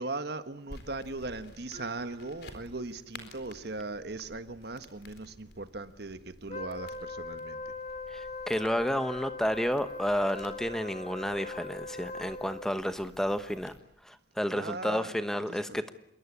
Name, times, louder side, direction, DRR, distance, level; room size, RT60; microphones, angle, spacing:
voice 1, 0.0-7.7 14.5-15.1 15.5-15.8, right 2 dB, 60° right, 11 dB, 1.5 m, -39 dB
sound 1, 0.7-13.8, left 2 dB, 60° left, 4.1 m, -53 dB
Mallet percussion, 1.7-5.8, right 6 dB, 35° right, 4.8 m, -55 dB
Wind instrument woodwind instrument, 6.5-12.8, left 3 dB, 45° left, 2.0 m, -41 dB
voice 2, 8.1-13.7 14.0-15.9, equal, 5° left, 10 dB, 1.1 m, -31 dB
27.5 x 22.5 x 8.5 m, 0.74 s
head